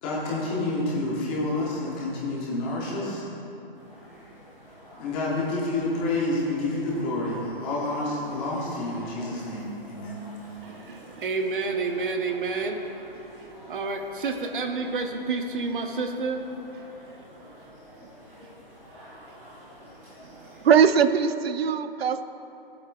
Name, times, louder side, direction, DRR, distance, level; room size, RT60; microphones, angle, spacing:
voice 1, 0.0-3.3 5.0-10.2, left 2 dB, 10° left, -5 dB, 0.6 m, -29 dB
sound 1, 3.7-21.0, equal, 10° right, 0.9 m, -49 dB
voice 2, 10.6-12.9 13.1-16.4 16.7-16.8 18.0-18.1 18.4-18.5 18.9-19.0, right 4 dB, 60° right, 5 dB, 0.8 m, -30 dB
voice 3, 20.2-22.2, right 7 dB, 90° right, 11 dB, 0.6 m, -21 dB
18.0 x 8.0 x 2.2 m, 2.9 s
hypercardioid pair, 170°, 30 cm